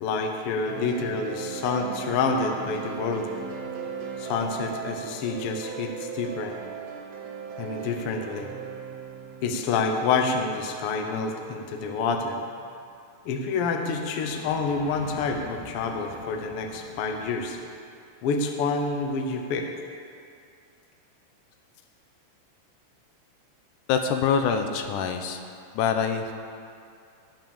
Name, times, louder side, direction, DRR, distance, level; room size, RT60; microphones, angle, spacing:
voice 1, 0.0-3.3 4.2-6.6 7.6-8.5 9.4-12.4 13.2-17.6 18.2-19.7, left 4 dB, 65° left, 4 dB, 1.6 m, -28 dB
sound 1, 0.7-12.8, right 6 dB, 65° right, 1.9 m, -38 dB
sound 2, 12.6-17.6, left 1 dB, 25° right, 4.3 m, -46 dB
voice 2, 23.9-25.4 25.7-26.3, left 7 dB, 80° left, 6 dB, 2.4 m, -25 dB
18.0 x 6.1 x 7.1 m, 2.4 s
omnidirectional pair, 3.7 m